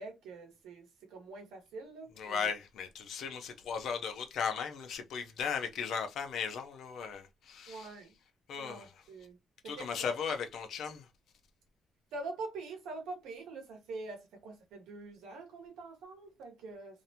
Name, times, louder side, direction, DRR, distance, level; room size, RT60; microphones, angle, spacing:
voice 1, 0.0-2.5 7.7-8.2 8.5-9.4 9.6-10.2 12.1-17.0, right 3 dB, 90° right, 1.0 m, -45 dB
voice 2, 2.2-7.9 8.5-8.9 9.6-11.0, left 6 dB, 70° left, 0.5 m, -36 dB
2.5 x 2.1 x 2.7 m
cardioid pair, 90°, 0 cm